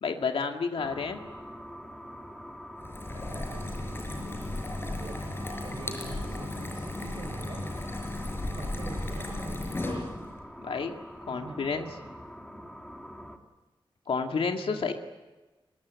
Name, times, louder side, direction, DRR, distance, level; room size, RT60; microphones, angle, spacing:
voice 1, 0.0-1.2 10.6-10.9 11.3-11.9 14.1-14.9, left 5 dB, 90° left, 4 dB, 2.1 m, -30 dB
sound 1, 0.8-13.4, equal, 5° left, 2.4 m, -45 dB
sound 2, 2.8-10.4, left 1 dB, 25° left, 5.7 m, -35 dB
voice 2, 3.1-4.5 4.9-7.7 8.4-9.6 11.3-12.1 14.6-14.9, right 3 dB, 60° right, 6 dB, 3.8 m, -45 dB
23.5 x 21.0 x 9.5 m, 1.2 s
wide cardioid pair, 150°, 9 cm